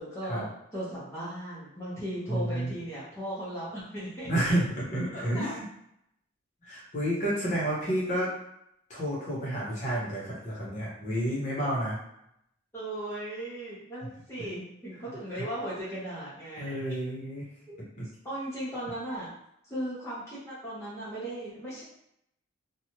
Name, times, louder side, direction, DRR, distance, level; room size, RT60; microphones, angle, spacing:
voice 1, 0.0-4.5 5.1-5.6 12.7-16.8 17.7-17.8 18.2-19.3 19.6-21.8, right 1 dB, 15° left, -10 dB, 0.8 m, -37 dB
voice 2, 2.3-2.7 4.3-5.6 6.6-8.3 8.9-12.0 16.6-17.5 18.0-18.1, right 1 dB, 35° left, -6 dB, 1.0 m, -30 dB
3.0 x 2.4 x 2.8 m, 0.76 s
head